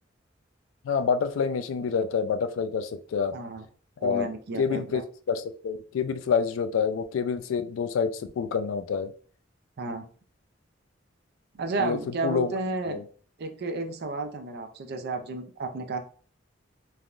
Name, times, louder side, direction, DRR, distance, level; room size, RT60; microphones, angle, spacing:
voice 1, 0.8-3.4 4.0-4.3 4.6-5.0 5.3-9.1 11.8-12.0 12.2-12.5 12.9-13.0, left 6 dB, 85° left, 11 dB, 0.3 m, -27 dB
voice 2, 3.3-3.7 4.0-5.0 9.8-10.0 11.6-13.0 13.4-16.0, right 3 dB, 55° right, 7 dB, 0.5 m, -32 dB
3.3 x 2.2 x 2.4 m, 0.43 s
head